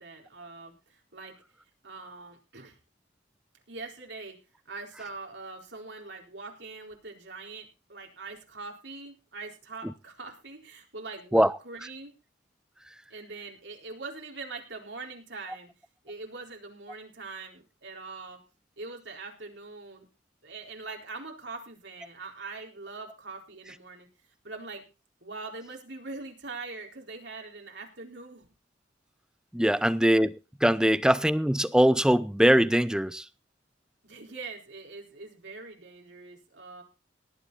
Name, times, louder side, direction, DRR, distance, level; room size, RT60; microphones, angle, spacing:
voice 1, 0.0-1.3 1.8-2.8 3.7-4.4 4.7-12.1 13.1-15.7 16.0-18.4 18.8-20.1 20.4-24.1 24.4-24.8 25.2-28.4 29.6-29.9 34.0-36.8, right 3 dB, 70° right, 4.2 m, -42 dB
voice 2, 29.5-30.3 30.6-33.2, equal, 5° right, 0.6 m, -22 dB
18.5 x 9.5 x 4.1 m
head